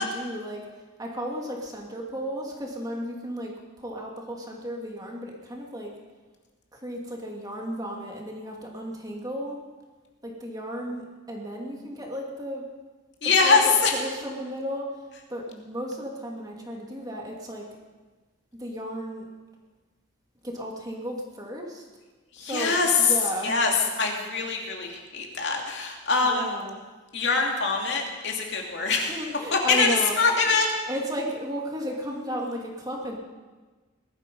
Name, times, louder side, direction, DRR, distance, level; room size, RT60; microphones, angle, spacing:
voice 1, 0.0-5.9 6.7-9.6 10.2-12.6 13.2-17.7 18.6-19.3 20.4-21.9 22.4-23.5 26.2-26.8 28.9-30.5 30.9-33.2, equal, 20° right, -1 dB, 2.4 m, -34 dB
voice 2, 13.2-13.9 22.3-23.1 23.4-23.7 24.0-26.5 27.1-29.2 29.5-29.9 30.2-30.7, left 4 dB, 60° left, 0 dB, 2.7 m, -23 dB
20.0 x 13.0 x 5.4 m, 1.3 s
head